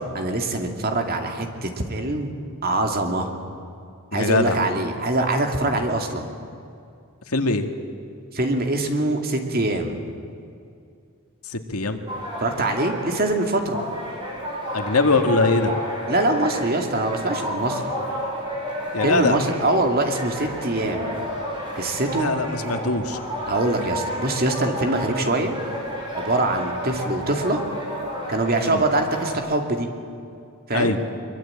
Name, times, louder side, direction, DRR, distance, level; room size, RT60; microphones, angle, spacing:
voice 1, 0.0-2.3 2.6-3.3 4.1-6.3 8.3-10.0 12.4-13.8 16.1-17.9 19.0-21.1 21.7-22.3 23.5-25.5 26.1-27.6 28.3-29.9 30.7-31.0, right 2 dB, 45° right, 4 dB, 2.5 m, -23 dB
voice 2, 4.1-4.6 7.3-7.7 11.4-12.0 14.7-15.7 18.9-19.4 22.2-23.2 28.6-28.8 30.7-31.0, left 3 dB, 85° left, 6 dB, 2.0 m, -22 dB
sound 1, 12.1-29.3, equal, 20° right, 6.5 m, -31 dB
23.5 x 23.0 x 8.9 m, 2.4 s
head